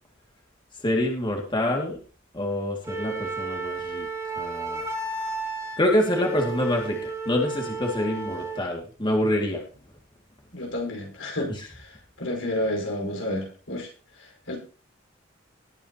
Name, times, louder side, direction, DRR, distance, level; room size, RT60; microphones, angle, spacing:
voice 1, 0.8-2.0 2.3-4.1 4.4-4.8 5.8-9.6, left 1 dB, 25° left, 0 dB, 2.4 m, -26 dB
Wind instrument woodwind instrument, 2.8-8.7, right 3 dB, 15° right, 3.7 m, -33 dB
voice 2, 10.5-13.9 14.2-14.6, left 1 dB, 80° left, 1 dB, 5.3 m, -31 dB
20.0 x 9.1 x 3.0 m, 0.38 s
head